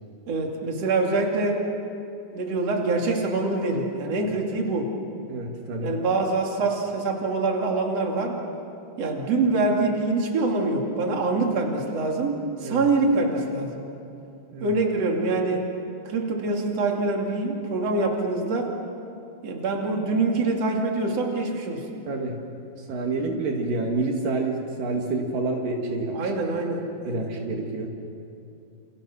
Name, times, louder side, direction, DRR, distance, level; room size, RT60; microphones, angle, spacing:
voice 1, 0.3-1.6 2.3-4.9 5.8-8.4 9.0-13.8 14.6-15.6 16.1-18.7 19.4-22.0 26.1-27.3, right 3 dB, 50° right, 0 dB, 3.7 m, -25 dB
voice 2, 5.3-5.9 12.6-12.9 14.5-14.7 22.1-22.4 22.9-26.3 27.0-27.9, right 3 dB, 75° right, 1 dB, 3.8 m, -28 dB
29.0 x 29.0 x 6.3 m, 2.7 s
omnidirectional pair, 3.9 m